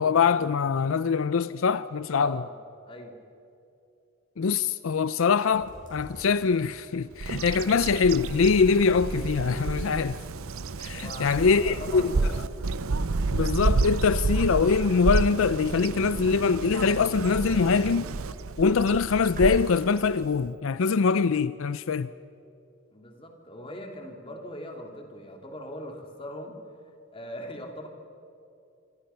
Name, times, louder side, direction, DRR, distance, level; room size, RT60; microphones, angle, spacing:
voice 1, 0.0-2.4 4.4-10.2 10.8-12.1 13.3-18.1 18.6-22.1, left 5 dB, 75° left, 0.5 m, -23 dB
voice 2, 2.1-2.5 2.8-3.1 10.9-12.3 22.9-26.5 27.1-27.9, left 1 dB, 25° left, 2.7 m, -40 dB
sound 1, 5.5-19.5, equal, 40° right, 7.4 m, -51 dB
Bird vocalization bird call bird song, 7.2-20.5, right 3 dB, 80° right, 0.6 m, -30 dB
26.0 x 25.5 x 5.7 m
head